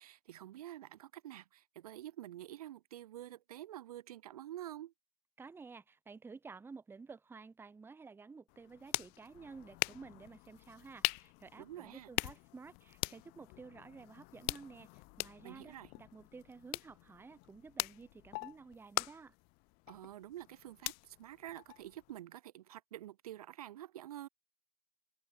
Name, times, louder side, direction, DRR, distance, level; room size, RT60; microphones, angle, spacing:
voice 1, 0.0-4.9 11.6-12.1 15.4-15.9 19.9-24.3, right 13 dB, 80° right, 0.4 m, -48 dB
voice 2, 5.4-14.9 15.2-19.3, right 4 dB, 10° right, 0.6 m, -53 dB
sound 1, 8.5-22.2, left 32 dB, 55° left, 0.7 m, -43 dB
hypercardioid pair, 80°, 19 cm